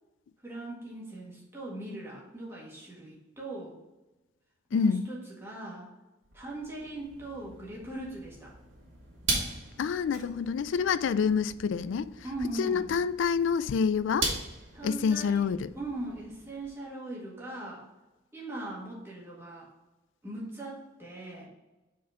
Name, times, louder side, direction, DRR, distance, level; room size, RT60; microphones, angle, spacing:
voice 1, 0.4-3.8 4.7-5.9 6.3-8.5 12.2-12.9 14.7-15.5 15.7-17.8 18.3-19.7 20.2-21.5, right 1 dB, 10° right, 1.7 m, -40 dB
voice 2, 4.7-5.0 9.8-12.1 12.6-14.3 14.8-15.7, left 6 dB, 75° left, 0.3 m, -27 dB
sound 1, 6.2-16.7, right 2 dB, 80° right, 2.1 m, -39 dB
5.0 x 4.2 x 5.7 m
head